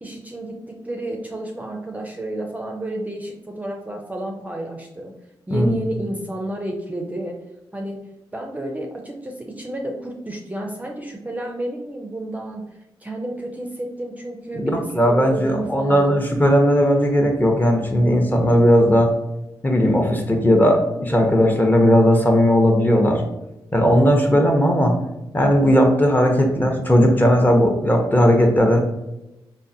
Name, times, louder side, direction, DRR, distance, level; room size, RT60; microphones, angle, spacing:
voice 1, 0.0-5.2 5.5-7.4 7.7-12.7 13.0-16.2, right 1 dB, 15° right, 1 dB, 0.4 m, -31 dB
voice 2, 14.5-19.1 19.6-23.2 23.7-25.0 25.3-28.8, equal, 20° left, 2 dB, 0.6 m, -17 dB
3.6 x 2.1 x 2.6 m, 0.95 s
cardioid pair, 60°, 9 cm